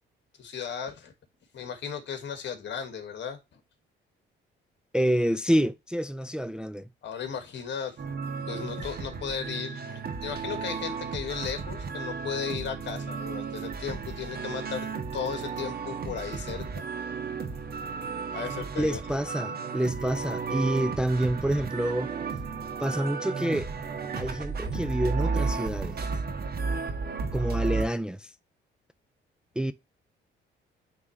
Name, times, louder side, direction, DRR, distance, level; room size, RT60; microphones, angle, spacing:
voice 1, 0.4-1.1 1.5-3.4 7.0-8.0 8.5-14.9 15.1-16.8 17.2-17.3 18.3-19.0 27.0-27.2, left 7 dB, 65° left, 1.7 m, -35 dB
voice 2, 4.9-6.9 18.8-22.1 22.8-23.7 24.2-26.0 27.3-28.3 29.6-29.7, right 1 dB, 5° right, 0.4 m, -28 dB
sound 1, 8.0-27.8, right 5 dB, 50° right, 1.5 m, -33 dB
9.4 x 3.7 x 3.1 m
cardioid pair, 90°, 20 cm